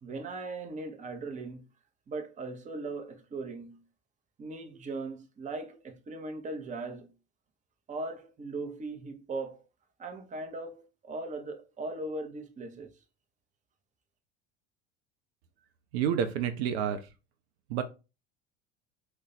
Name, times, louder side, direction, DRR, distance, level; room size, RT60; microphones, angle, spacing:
voice 1, 0.0-1.7 2.1-3.8 4.4-7.1 7.9-9.6 10.0-13.0, right 3 dB, 20° right, 0.7 m, -39 dB
voice 2, 15.9-17.0 17.7-17.8, right 8 dB, 65° right, 0.5 m, -29 dB
2.5 x 2.2 x 3.9 m
hypercardioid pair, 75°, 34 cm